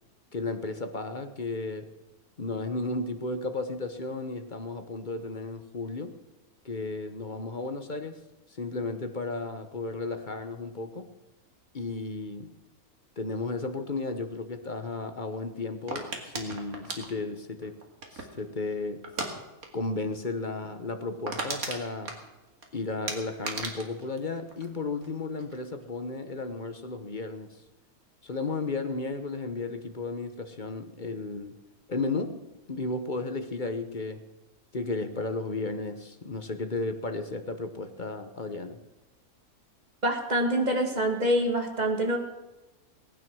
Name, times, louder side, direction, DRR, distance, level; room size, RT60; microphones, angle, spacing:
voice 1, 0.3-1.9 2.4-6.2 6.6-8.2 8.6-11.1 11.7-12.5 13.2-17.8 18.1-19.1 19.7-22.2 22.7-27.6 28.2-31.6 31.9-34.2 34.7-38.8, left 3 dB, 35° left, 8 dB, 1.1 m, -34 dB
sound 1, 15.9-18.4 19.0-19.3 19.6-19.9 20.1-20.2 20.6-20.7 21.0-22.7 23.1-25.1 25.4-25.8, right 3 dB, 70° right, 2.5 m, -36 dB
voice 2, 40.0-42.2, right 1 dB, 30° right, 3 dB, 2.2 m, -25 dB
19.5 x 9.6 x 6.2 m, 1.1 s
omnidirectional pair, 1.6 m